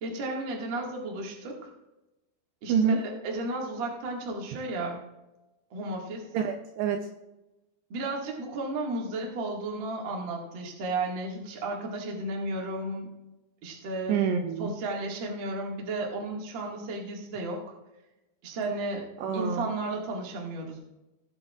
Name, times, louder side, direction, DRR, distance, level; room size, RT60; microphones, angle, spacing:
voice 1, 0.0-1.7 2.6-5.0 5.7-6.3 7.9-13.1 13.6-14.2 14.6-17.6 18.4-19.1 19.3-20.8, right 2 dB, 55° right, -1 dB, 1.3 m, -33 dB
voice 2, 2.7-3.0 6.3-7.1 14.1-14.7 19.2-19.7, right 6 dB, 80° right, 4 dB, 2.5 m, -27 dB
18.5 x 8.7 x 2.4 m, 1.0 s
omnidirectional pair, 5.3 m